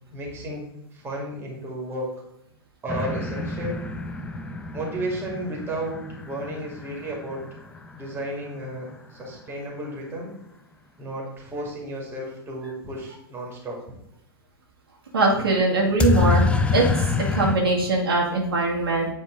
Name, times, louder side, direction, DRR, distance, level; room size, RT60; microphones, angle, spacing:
voice 1, 0.1-0.6 0.9-2.1 2.8-3.8 4.7-7.4 7.9-10.3 11.0-13.8, right 1 dB, 15° right, -2 dB, 2.3 m, -33 dB
sound 1, 2.9-8.6 16.0-17.6, left 3 dB, 10° left, 0.4 m, -27 dB
voice 2, 15.1-16.5 16.7-19.1, right 2 dB, 70° right, -3 dB, 2.0 m, -21 dB
9.1 x 3.7 x 3.8 m, 0.80 s
figure-of-eight pair, 105°, 13 cm